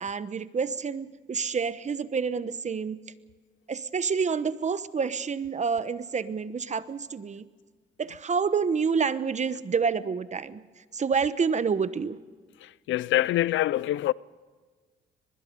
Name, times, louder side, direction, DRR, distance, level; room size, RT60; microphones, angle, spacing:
voice 1, 0.0-3.0 3.7-7.5 8.0-10.6 10.9-12.2, right 5 dB, 35° right, 1.0 m, -28 dB
voice 2, 12.6-14.1, left 14 dB, 75° left, 0.5 m, -25 dB
23.0 x 21.0 x 5.4 m
cardioid pair, 90°, 20 cm